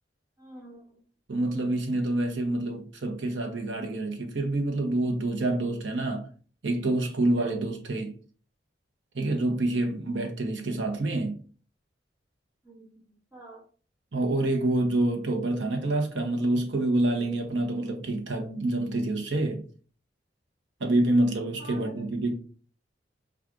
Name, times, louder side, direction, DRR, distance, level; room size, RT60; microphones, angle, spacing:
voice 1, 0.4-1.0 12.6-13.6 21.6-22.0, right 1 dB, 10° right, 0.9 m, -47 dB
voice 2, 1.3-6.3 6.6-8.1 9.1-11.4 14.1-19.6 20.8-22.3, right 2 dB, 85° right, 0.9 m, -27 dB
4.6 x 2.4 x 2.5 m
head